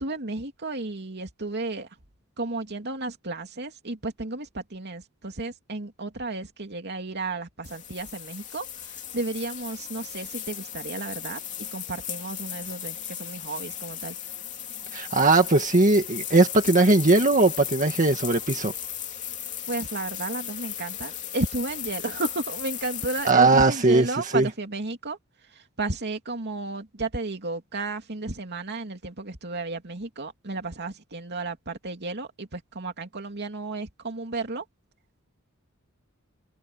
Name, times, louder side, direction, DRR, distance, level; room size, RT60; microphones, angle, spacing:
voice 1, 0.0-1.9 2.4-14.1 19.7-34.6, right 2 dB, 50° right, 2.8 m, -33 dB
sound 1, 7.6-23.3, left 10 dB, 35° left, 3.0 m, -36 dB
voice 2, 14.9-18.7 23.3-24.1 24.3-24.5, right 2 dB, 35° right, 1.9 m, -19 dB
open air
head